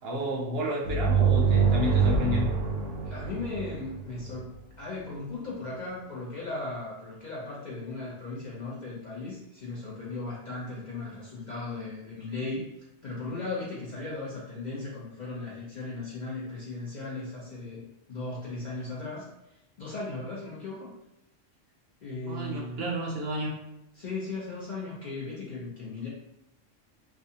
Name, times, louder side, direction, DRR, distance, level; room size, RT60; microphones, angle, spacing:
voice 1, 0.0-2.5 22.2-23.5, equal, 65° right, -2 dB, 0.7 m, -31 dB
sound 1, 0.8-4.4, right 5 dB, 85° right, 0.9 m, -25 dB
voice 2, 3.0-4.5 4.8-12.7 13.0-19.3 19.8-20.9 22.0-22.8 24.0-26.1, left 3 dB, 55° left, -6 dB, 0.5 m, -37 dB
2.4 x 2.3 x 2.7 m, 0.91 s
omnidirectional pair, 1.3 m